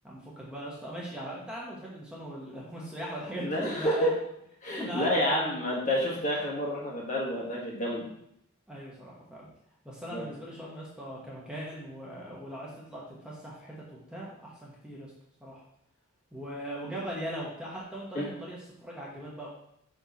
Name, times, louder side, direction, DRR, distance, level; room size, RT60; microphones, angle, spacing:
voice 1, 0.0-4.1 4.8-5.5 8.7-9.5 9.8-13.7 14.1-15.1 15.4-15.6 16.3-19.5, right 1 dB, 5° right, -5 dB, 1.2 m, -39 dB
voice 2, 3.4-4.1 4.6-8.1 10.1-10.3 18.1-18.3, equal, 35° left, -4 dB, 1.5 m, -29 dB
5.9 x 4.5 x 4.1 m, 0.74 s
head